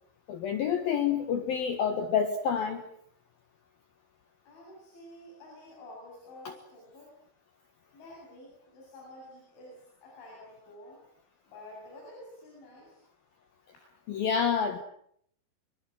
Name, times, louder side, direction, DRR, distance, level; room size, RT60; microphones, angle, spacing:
voice 1, 0.3-2.8 6.4-6.5 14.1-14.8, left 7 dB, 60° left, 7 dB, 3.0 m, -28 dB
voice 2, 4.5-7.1 7.9-11.0 11.5-13.0 13.7-13.8, left 1 dB, 85° left, -2 dB, 10.0 m, -50 dB
26.5 x 25.0 x 7.7 m, 0.68 s
omnidirectional pair, 5.3 m